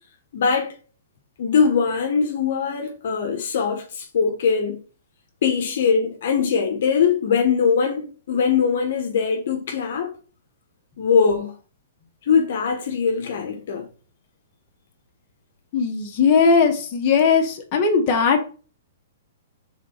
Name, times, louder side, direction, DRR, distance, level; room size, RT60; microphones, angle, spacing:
voice 1, 0.3-0.7 1.4-4.8 5.4-10.1 11.0-11.5 12.3-13.9, left 6 dB, 65° left, 1.1 m, -21 dB
voice 2, 15.7-18.5, left 5 dB, 30° left, 1.6 m, -18 dB
5.0 x 3.9 x 5.7 m
hypercardioid pair, 155°, 0 cm